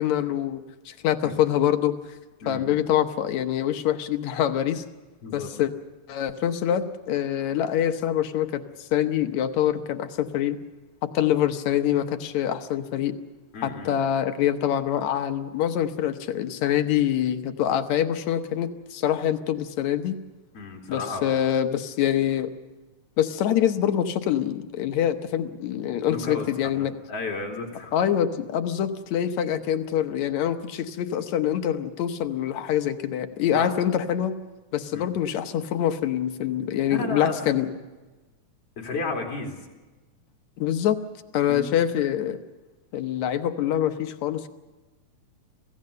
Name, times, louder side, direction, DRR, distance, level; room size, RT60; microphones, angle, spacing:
voice 1, 0.0-2.0 2.5-4.8 5.3-5.7 6.1-10.6 11.0-13.2 13.6-20.2 20.9-22.5 23.2-26.9 27.9-34.4 34.7-37.7 40.6-41.0 41.3-42.4 42.9-44.5, left 10 dB, 75° left, 8 dB, 2.2 m, -25 dB
voice 2, 2.4-2.8 5.2-5.5 13.5-13.9 20.5-21.4 26.1-27.9 33.5-33.8 34.9-35.1 36.9-37.4 37.6-37.7 38.8-39.6 41.5-41.7, left 3 dB, 55° left, 1 dB, 3.7 m, -33 dB
26.0 x 16.5 x 6.6 m, 1.2 s
omnidirectional pair, 3.4 m